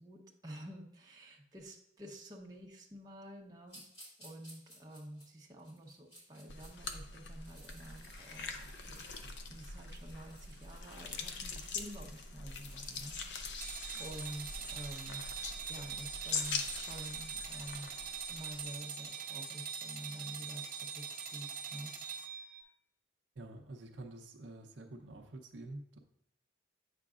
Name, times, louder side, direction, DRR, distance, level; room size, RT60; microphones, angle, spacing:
voice 1, 0.0-3.8 4.2-15.3 15.7-17.9 18.3-22.6, right 1 dB, 20° right, -2 dB, 0.8 m, -49 dB
sound 1, 3.7-7.0 7.3-16.0, right 1 dB, 30° left, 2.7 m, -59 dB
sound 2, 6.5-18.7, left 4 dB, 65° left, 0.6 m, -43 dB
sound 3, 13.6-22.6, right 6 dB, 45° right, 0.8 m, -43 dB
voice 2, 23.4-26.0, right 2 dB, 70° right, 3 dB, 0.7 m, -48 dB
8.3 x 5.9 x 2.4 m, 0.77 s
head